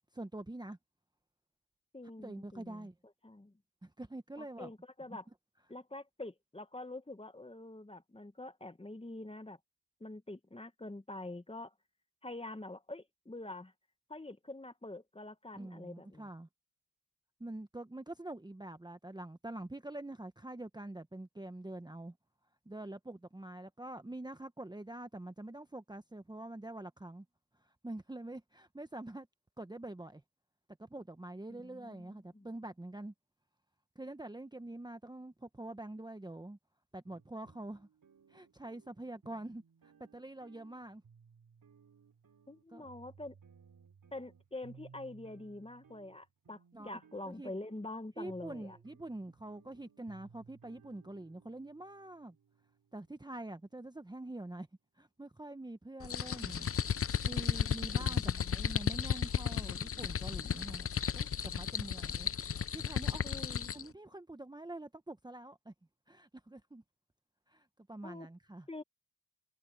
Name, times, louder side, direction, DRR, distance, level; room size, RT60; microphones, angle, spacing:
voice 1, 0.1-0.8 2.2-2.9 3.8-4.7 15.5-16.5 17.4-22.2 22.7-27.2 27.6-29.3 29.6-30.2 30.8-33.1 33.9-36.6 36.9-37.9 38.3-41.0 42.7-42.9 46.7-46.9 47.2-47.5 48.2-52.4 52.9-54.7 55.0-56.7 57.2-63.2 63.7-65.7 66.1-66.8 67.5-68.7, right 1 dB, 10° right, 1.2 m, -46 dB
voice 2, 1.9-2.9 3.2-3.5 4.4-5.2 5.7-9.6 10.0-11.7 12.2-13.7 14.1-16.3 31.5-32.5 42.5-43.3 44.1-48.8 57.9-58.7 63.2-63.7 68.0-68.3 68.7-68.8, left 2 dB, 15° left, 1.7 m, -46 dB
sound 1, 37.0-53.3, right 6 dB, 55° right, 4.4 m, -62 dB
sound 2, 56.0-63.9, left 8 dB, 35° left, 0.6 m, -34 dB
cardioid pair, 65°, 39 cm